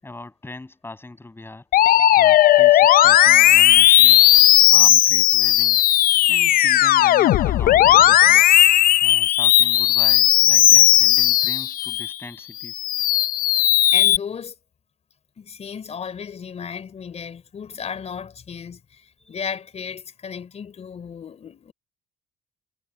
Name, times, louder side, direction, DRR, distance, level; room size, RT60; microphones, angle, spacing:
voice 1, 0.0-1.7 2.2-4.2 4.7-5.8 6.3-8.6 9.0-12.9, left 2 dB, 15° left, 7.6 m, -40 dB
Musical instrument, 1.7-12.1 12.6-14.2, left 13 dB, 60° left, 0.5 m, -15 dB
voice 2, 13.9-14.5 15.4-21.7, left 7 dB, 40° left, 3.9 m, -34 dB
cardioid pair, 110°, 17 cm